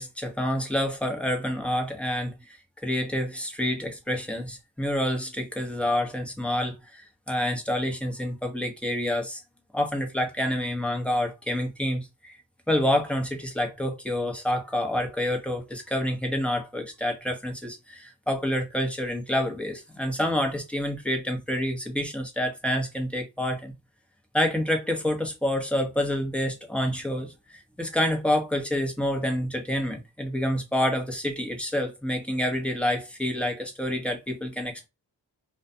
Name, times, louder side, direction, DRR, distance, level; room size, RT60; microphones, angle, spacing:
voice 1, 0.0-9.4 9.7-12.4 12.7-23.7 24.3-34.9, left 1 dB, 5° left, 0.9 m, -28 dB
2.4 x 2.2 x 2.6 m
cardioid pair, 60°, 45 cm